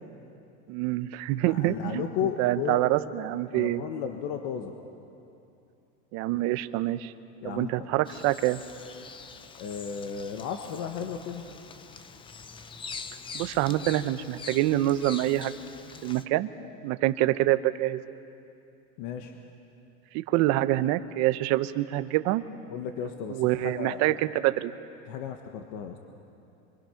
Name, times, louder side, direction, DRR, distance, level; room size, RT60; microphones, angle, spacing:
voice 1, 0.7-2.0 2.4-3.8 6.1-7.1 7.4-8.6 13.3-15.6 16.0-16.5 16.8-18.0 20.1-22.4 23.3-24.7, right 16 dB, 45° right, 12 dB, 0.9 m, -26 dB
voice 2, 1.5-2.8 3.5-4.8 7.4-7.7 9.6-11.5 13.6-13.8 19.0-19.4 22.7-24.2 25.1-26.0, left 8 dB, 50° left, 5 dB, 1.4 m, -34 dB
Bird vocalization bird call bird song, 8.1-16.2, left 5 dB, 15° left, 0.5 m, -44 dB
26.5 x 24.5 x 5.8 m, 2.7 s
supercardioid pair, 145°, 38 cm